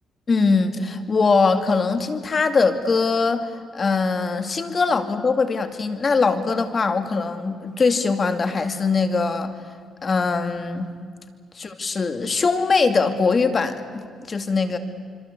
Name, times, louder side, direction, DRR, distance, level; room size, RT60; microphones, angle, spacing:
voice 1, 0.3-9.5 10.0-10.9 11.6-14.8, left 4 dB, 35° left, 9 dB, 2.4 m, -22 dB
26.5 x 25.5 x 8.3 m, 2.1 s
cardioid pair, 90°, 0 cm